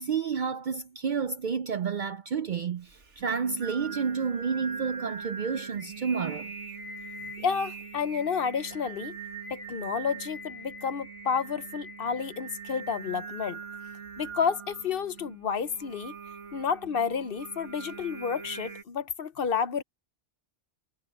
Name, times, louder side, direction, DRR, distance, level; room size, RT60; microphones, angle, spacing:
voice 1, 0.0-6.5, right 6 dB, 55° right, 0.6 m, -30 dB
Singing, 2.9-18.8, right 5 dB, 75° right, 2.2 m, -42 dB
voice 2, 7.4-9.2 9.5-13.6 14.2-16.1 16.5-19.8, left 6 dB, 55° left, 0.9 m, -30 dB
omnidirectional pair, 1.2 m